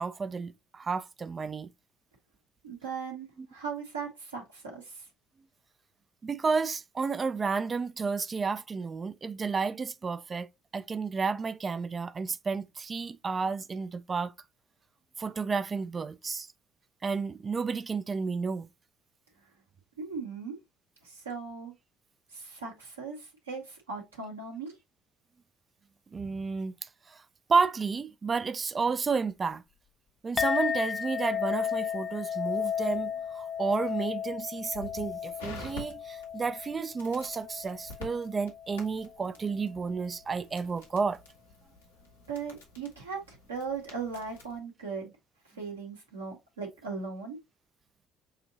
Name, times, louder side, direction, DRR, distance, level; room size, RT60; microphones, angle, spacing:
voice 1, 0.0-1.7 6.2-10.5 10.7-14.3 15.2-16.5 17.0-18.7 26.1-27.2 27.5-29.6 30.2-41.2, right 5 dB, 30° right, 0.4 m, -31 dB
voice 2, 2.6-5.1 20.0-20.6 21.0-21.7 22.3-24.7 42.3-45.1 45.4-47.4, right 5 dB, 85° right, 1.6 m, -38 dB
Chink clink, 30.4-39.1, left 8 dB, 35° left, 0.6 m, -34 dB
Crackle, 34.7-44.6, left 2 dB, 85° left, 1.3 m, -49 dB
6.5 x 2.8 x 2.7 m
figure-of-eight pair, 55°, 0 cm